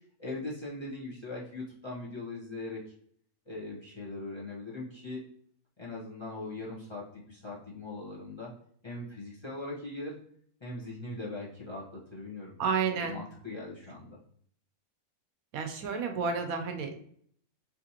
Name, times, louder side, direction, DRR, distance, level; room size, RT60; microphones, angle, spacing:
voice 1, 0.2-2.8 3.5-5.2 5.8-8.5 8.8-10.2 10.6-12.5 12.8-14.2, left 2 dB, 20° left, -5 dB, 1.1 m, -40 dB
voice 2, 12.6-13.2 15.5-17.0, right 5 dB, 75° right, 5 dB, 1.0 m, -31 dB
5.0 x 3.2 x 2.8 m, 0.62 s
omnidirectional pair, 1.6 m